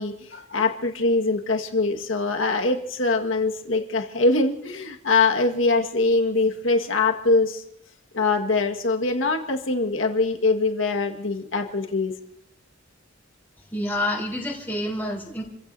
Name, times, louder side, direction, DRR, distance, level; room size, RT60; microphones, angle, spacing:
voice 1, 0.0-7.6 8.1-12.1, left 3 dB, 80° left, 3 dB, 1.8 m, -23 dB
voice 2, 13.7-15.4, left 1 dB, 10° left, -4 dB, 3.9 m, -28 dB
29.0 x 15.5 x 2.8 m, 0.78 s
head